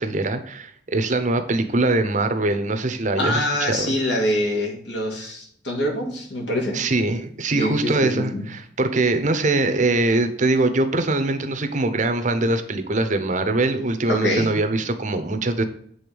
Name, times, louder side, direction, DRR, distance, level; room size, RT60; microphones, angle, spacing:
voice 1, 0.0-4.0 6.7-15.6, right 2 dB, 45° right, 8 dB, 0.8 m, -22 dB
voice 2, 3.2-6.8 7.6-8.4 14.1-14.5, left 1 dB, 80° left, 0 dB, 2.3 m, -25 dB
7.8 x 3.8 x 5.2 m, 0.62 s
head